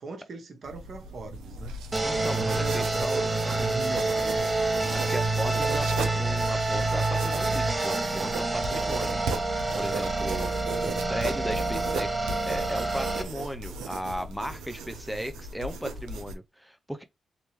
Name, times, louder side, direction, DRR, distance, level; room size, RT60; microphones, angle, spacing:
voice 1, 0.0-1.8 2.1-4.5, right 3 dB, 60° right, 1.1 m, -39 dB
sound 1, 0.6-16.3, right 4 dB, 85° right, 0.6 m, -37 dB
sound 2, 1.9-13.2, right 2 dB, 25° right, 1.1 m, -27 dB
voice 2, 2.0-3.3 4.9-9.2 9.8-10.5 10.8-17.0, equal, 5° right, 0.6 m, -36 dB
3.3 x 2.9 x 3.2 m
hypercardioid pair, 40°, 0 cm